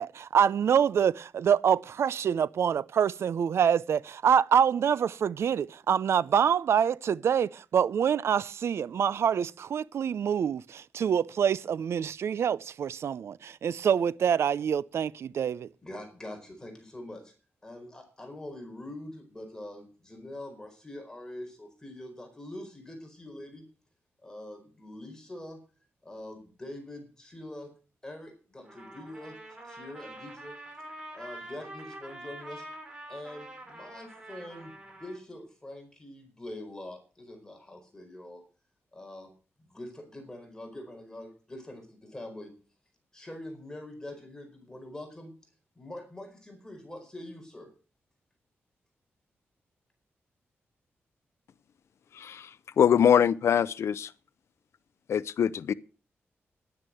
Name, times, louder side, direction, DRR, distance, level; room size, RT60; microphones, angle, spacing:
voice 1, 0.0-15.7, right 8 dB, 75° right, 0.5 m, -26 dB
voice 2, 15.8-17.3 17.6-23.6 24.2-25.6 26.0-27.7 28.0-29.3 29.6-30.6 31.1-32.7 33.1-38.4 38.9-39.3 39.6-42.5 43.1-45.3 45.8-47.7, left 1 dB, 15° left, 4.5 m, -44 dB
Trumpet, 28.6-35.2, right 1 dB, 20° right, 4.9 m, -45 dB
voice 3, 52.2-52.5 52.8-54.1 55.1-55.7, left 8 dB, 80° left, 0.7 m, -23 dB
11.0 x 9.7 x 7.7 m
wide cardioid pair, 110°, 5 cm